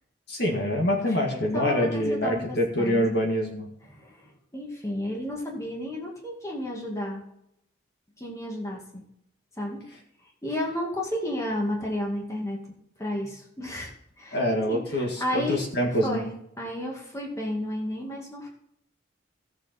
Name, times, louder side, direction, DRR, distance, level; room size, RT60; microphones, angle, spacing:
voice 1, 0.3-3.7 14.3-16.2, equal, 55° left, 1 dB, 1.9 m, -25 dB
voice 2, 1.1-3.2 3.9-7.2 8.2-9.0 9.6-9.8 10.4-12.6 13.0-13.9 14.2-14.4 14.7-15.6 16.0-18.5, left 1 dB, 15° left, -2 dB, 2.3 m, -32 dB
17.0 x 6.6 x 4.4 m, 0.76 s
head